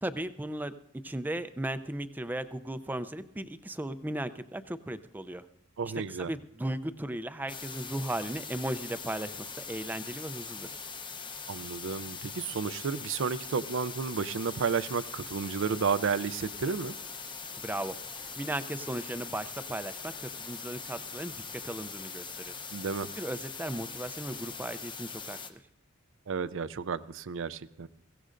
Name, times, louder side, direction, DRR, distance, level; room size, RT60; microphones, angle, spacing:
voice 1, 0.0-0.7 1.0-5.5 6.1-10.7 17.6-18.0 18.4-22.6 23.2-25.6, right 1 dB, 10° right, 12 dB, 0.4 m, -36 dB
voice 2, 5.8-6.3 11.5-17.0 22.7-23.1 26.3-27.9, right 5 dB, 65° right, 17 dB, 0.5 m, -32 dB
sound 1, 7.5-25.5, left 5 dB, 25° left, 0.7 m, -42 dB
21.0 x 16.5 x 2.5 m, 0.80 s
head